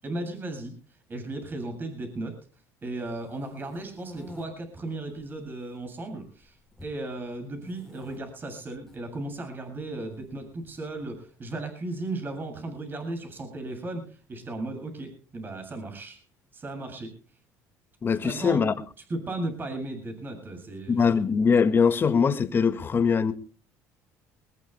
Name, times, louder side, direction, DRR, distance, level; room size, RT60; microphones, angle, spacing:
voice 1, 0.0-0.7 1.1-2.4 2.8-16.2 16.5-17.2 18.2-18.6 19.1-21.3, right 2 dB, 30° right, 7.5 m, -36 dB
sound 1, 3.1-4.5 5.1-5.7 6.0-7.0 7.6-8.2 8.7-9.0 10.1-11.0, left 1 dB, 5° left, 4.5 m, -48 dB
voice 2, 18.0-18.7 20.9-23.3, left 6 dB, 35° left, 1.9 m, -22 dB
22.0 x 21.0 x 2.2 m
supercardioid pair, 100°, 7 cm